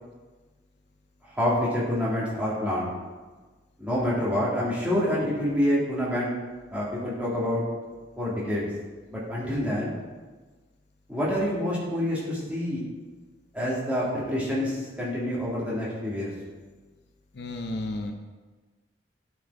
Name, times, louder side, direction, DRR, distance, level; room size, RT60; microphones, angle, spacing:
voice 1, 1.3-2.9 3.8-6.3 6.7-7.6 8.2-8.7 9.1-10.0 11.1-12.8 13.5-16.3, left 1 dB, 5° right, -7 dB, 2.2 m, -27 dB
voice 2, 17.3-18.1, left 2 dB, 65° left, 5 dB, 0.6 m, -32 dB
10.0 x 4.7 x 4.7 m, 1.3 s
head